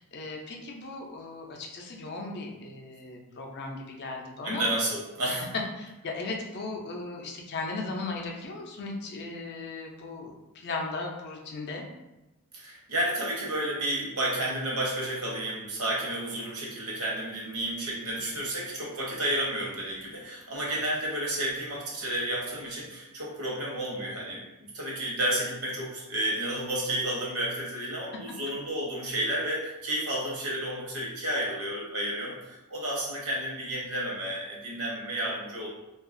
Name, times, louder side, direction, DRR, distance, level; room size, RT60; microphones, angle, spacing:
voice 1, 0.0-4.6 5.8-11.8, left 3 dB, 50° left, 1 dB, 0.4 m, -37 dB
voice 2, 4.4-5.4 12.5-35.7, right 1 dB, 75° right, -4 dB, 0.9 m, -31 dB
2.7 x 2.4 x 2.5 m, 0.97 s
head